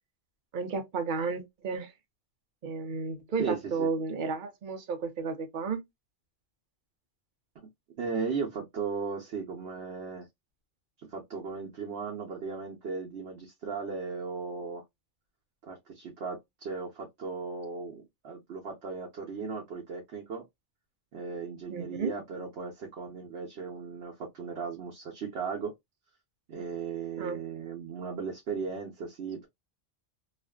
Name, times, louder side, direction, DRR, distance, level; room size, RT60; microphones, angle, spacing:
voice 1, 0.5-1.9 2.6-5.8 21.7-22.1 27.2-27.4, right 4 dB, 55° right, 0.7 m, -32 dB
voice 2, 3.4-3.9 8.0-10.3 11.0-14.8 15.7-20.4 21.1-25.7 26.5-29.5, right 5 dB, 80° right, 1.0 m, -36 dB
2.5 x 2.4 x 2.2 m
omnidirectional pair, 1.1 m